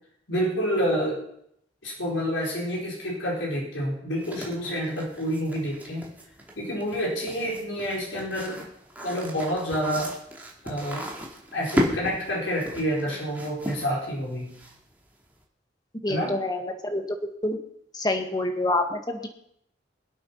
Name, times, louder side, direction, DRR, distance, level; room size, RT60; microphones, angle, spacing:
voice 1, 0.3-1.2 1.8-6.0 6.6-8.7 9.0-10.1 10.6-11.1 11.5-14.5 16.1-16.4, equal, 90° left, -3 dB, 4.8 m, -28 dB
sound 1, 4.2-15.0, equal, 10° right, 2.6 m, -35 dB
voice 2, 16.0-17.6 17.9-19.3, left 2 dB, 20° left, 4 dB, 1.8 m, -27 dB
23.0 x 8.5 x 5.7 m, 0.73 s
head